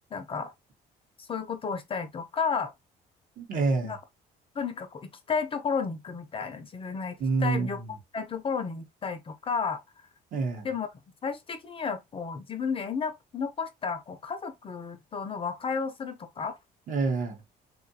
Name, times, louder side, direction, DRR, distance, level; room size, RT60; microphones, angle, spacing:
voice 1, 0.1-0.5 1.3-2.7 3.8-4.0 4.6-7.8 8.1-9.8 10.6-10.9 11.2-16.6, left 5 dB, 30° left, 0.5 m, -32 dB
voice 2, 3.4-4.0 7.2-7.9 10.3-10.7 16.9-17.4, right 4 dB, 50° right, 1.0 m, -27 dB
2.7 x 2.4 x 2.6 m
cardioid pair, 110°, 17 cm